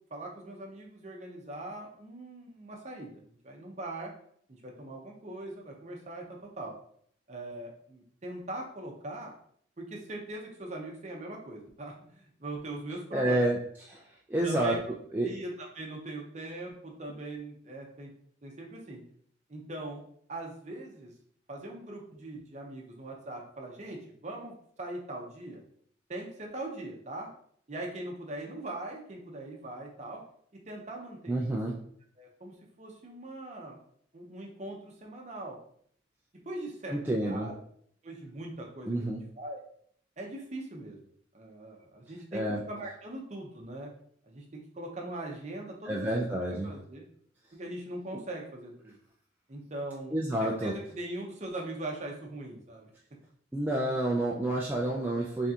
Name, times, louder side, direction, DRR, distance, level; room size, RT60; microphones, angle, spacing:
voice 1, 0.1-4.1 4.6-6.7 7.3-9.3 9.8-13.6 14.4-14.8 15.2-18.1 18.4-19.0 19.5-20.0 20.3-21.1 21.5-25.6 26.1-27.3 27.7-30.2 30.7-31.6 32.2-33.8 34.1-35.6 36.5-37.5 38.0-39.6 40.2-41.0 41.3-42.4 42.7-43.9 44.2-47.0 47.5-49.0 49.5-50.1 50.4-52.9, right 1 dB, 35° right, 0 dB, 0.7 m, -41 dB
voice 2, 13.1-13.6 13.9-14.8 15.1-15.3 31.3-31.8 36.9-37.5 38.9-39.2 42.3-42.6 45.8-46.7 50.1-50.7 53.5-55.5, right 1 dB, 10° right, -4 dB, 0.3 m, -29 dB
3.7 x 3.5 x 2.8 m, 0.62 s
head